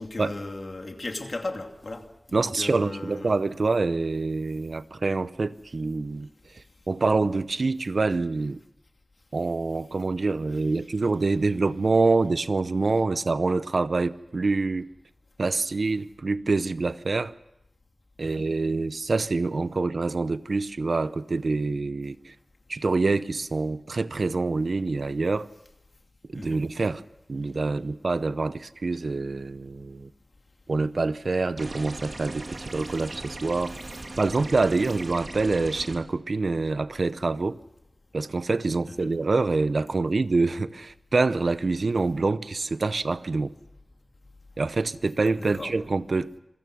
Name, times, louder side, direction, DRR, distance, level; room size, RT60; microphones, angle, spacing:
voice 1, 0.0-3.4 18.2-18.5 26.3-26.6 39.0-39.1 45.4-45.7, left 2 dB, 65° left, 2.6 m, -36 dB
voice 2, 2.3-6.3 6.9-8.6 9.3-14.9 15.4-17.3 18.2-22.3 22.7-25.5 26.3-27.0 27.3-30.1 30.7-33.7 34.2-37.6 38.1-43.5 44.6-46.3, right 3 dB, 80° right, 0.7 m, -26 dB
sound 1, 31.6-36.0, right 2 dB, 65° right, 2.4 m, -39 dB
26.5 x 17.0 x 6.2 m
wide cardioid pair, 55°, 0 cm